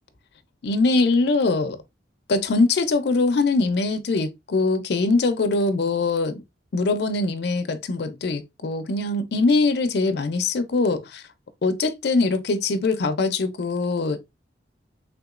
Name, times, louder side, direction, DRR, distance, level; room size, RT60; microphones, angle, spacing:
voice 1, 0.6-1.8 2.3-6.4 6.7-11.2 11.6-14.2, left 3 dB, 60° left, 0.4 m, -22 dB
3.4 x 2.9 x 2.3 m
head